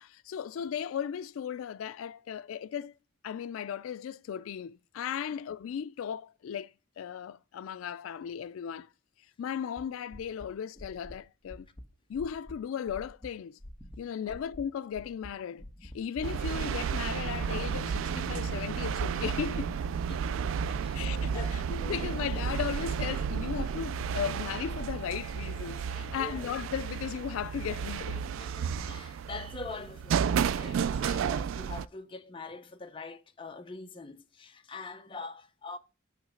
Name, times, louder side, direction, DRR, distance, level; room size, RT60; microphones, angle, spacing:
voice 1, 0.0-2.9 3.2-8.9 9.4-11.7 12.1-13.6 14.0-19.8 20.7-28.3 30.7-30.8 31.0-31.2, left 8 dB, 85° left, 0.3 m, -36 dB
sound 1, 9.8-9.9 10.1-10.5 10.7-11.1 11.4-11.8 12.1-12.5 12.9-13.3 13.6-14.0 14.3-14.6 14.9-15.3 15.6-16.6 16.9-17.3 17.6-17.9 18.2-18.6 18.9-20.0 20.3-20.7 21.0-21.4 21.7-22.2 22.5-22.9 23.2-25.0 25.3-25.7 26.0-27.1 27.4-28.9, equal, 10° left, 1.1 m, -46 dB
sound 2, 16.2-31.8, right 7 dB, 75° right, 0.3 m, -32 dB
Bass guitar, 17.1-23.4, left 2 dB, 60° left, 1.1 m, -47 dB
voice 2, 21.3-22.1 26.1-26.5 28.4-35.8, left 3 dB, 25° left, 0.7 m, -44 dB
9.2 x 3.2 x 6.1 m
head